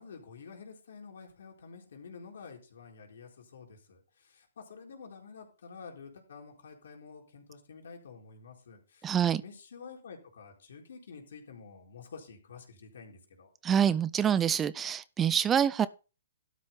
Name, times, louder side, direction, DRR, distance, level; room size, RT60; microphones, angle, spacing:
voice 1, 0.0-13.5, left 5 dB, 70° left, 4.0 m, -49 dB
voice 2, 9.0-9.4 13.6-15.9, right 8 dB, 15° right, 0.5 m, -26 dB
12.5 x 6.2 x 5.4 m
hypercardioid pair, 145°, 0 cm